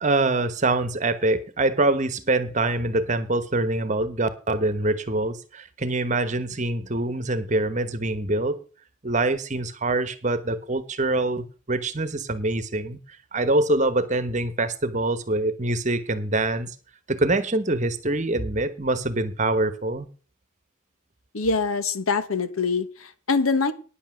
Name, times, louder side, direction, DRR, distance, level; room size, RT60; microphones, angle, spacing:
voice 1, 0.0-8.6 9.0-13.0 13.3-16.7 17.1-20.1, right 2 dB, 35° right, 1.1 m, -24 dB
voice 2, 21.3-23.7, left 4 dB, 85° left, 1.2 m, -24 dB
10.0 x 8.1 x 6.3 m
head